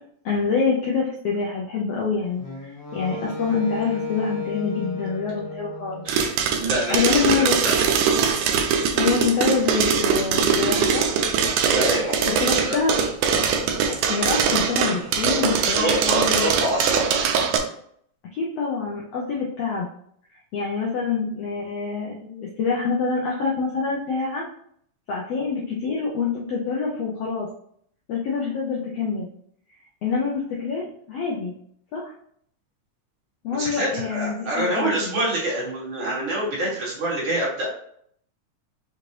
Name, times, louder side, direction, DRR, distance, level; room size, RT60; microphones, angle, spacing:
voice 1, 0.2-6.0 6.9-7.6 9.0-11.1 12.4-12.9 13.9-16.5 18.3-19.9 20.5-24.4 25.1-27.5 28.1-29.3 30.0-31.5 31.9-32.1 33.4-34.9, left 5 dB, 85° left, -3 dB, 1.4 m, -26 dB
Wind instrument woodwind instrument, 2.4-6.6, left 4 dB, 50° left, 1.6 m, -34 dB
sound 1, 6.1-17.6, right 6 dB, 80° right, 2.1 m, -22 dB
voice 2, 6.6-7.7 11.6-12.8 15.5-17.3 33.6-37.7, right 1 dB, 45° right, -6 dB, 2.0 m, -26 dB
5.6 x 2.5 x 3.2 m, 0.65 s
omnidirectional pair, 3.6 m